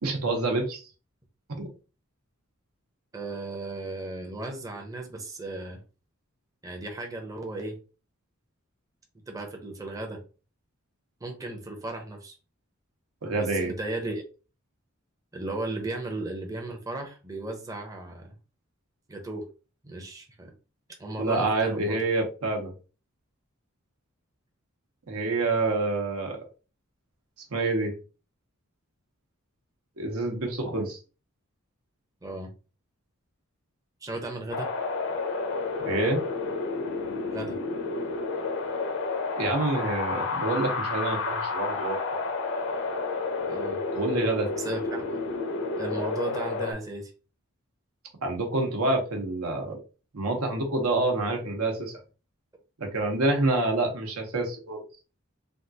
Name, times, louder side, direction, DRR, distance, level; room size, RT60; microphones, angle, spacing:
voice 1, 0.0-0.9 1.6-1.7 13.2-13.7 21.2-22.7 25.1-26.4 27.5-27.9 30.0-31.0 35.8-36.2 39.4-42.2 43.9-44.5 48.2-49.8 50.1-52.0 52.8-54.8, right 2 dB, 85° right, 2 dB, 1.0 m, -27 dB
voice 2, 3.1-5.8 6.6-7.8 9.3-10.2 11.2-12.3 13.3-14.2 15.3-18.3 19.1-19.5 19.8-20.5 21.0-22.0 32.2-32.5 34.0-34.7 37.3-37.6 43.5-43.8 44.6-45.2 45.8-47.1, right 2 dB, 15° right, 2 dB, 0.6 m, -35 dB
Wind, 34.5-46.7, left 3 dB, 60° left, 0.6 m, -30 dB
3.5 x 2.4 x 2.7 m, 0.33 s
head